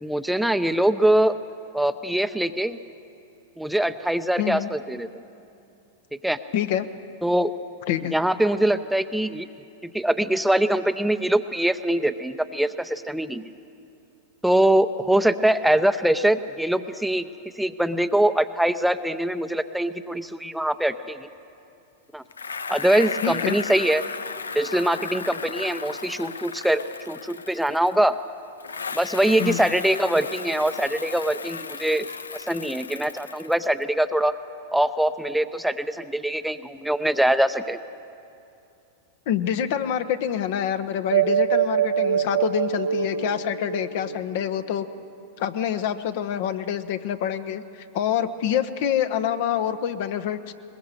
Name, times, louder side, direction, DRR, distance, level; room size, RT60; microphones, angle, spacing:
voice 1, 0.0-1.3 1.7-2.8 3.6-5.2 6.2-6.4 7.2-7.5 8.1-9.5 9.8-13.5 14.4-17.3 17.6-21.3 22.1-22.2 22.7-24.0 24.5-28.1 28.9-32.1 32.3-34.3 34.7-37.8, right 1 dB, ahead, 10 dB, 0.7 m, -23 dB
voice 2, 4.4-4.7 6.5-6.9 7.9-8.2 23.2-23.6 29.4-29.6 39.3-44.9 45.4-50.5, left 9 dB, 60° left, 9 dB, 1.0 m, -26 dB
Bicycle, 22.3-28.2 28.6-33.8, left 5 dB, 90° left, 0.5 m, -35 dB
sound 1, 41.1-45.0, right 9 dB, 75° right, 0.9 m, -24 dB
21.0 x 21.0 x 6.8 m, 2.7 s
hypercardioid pair, 100°, 0 cm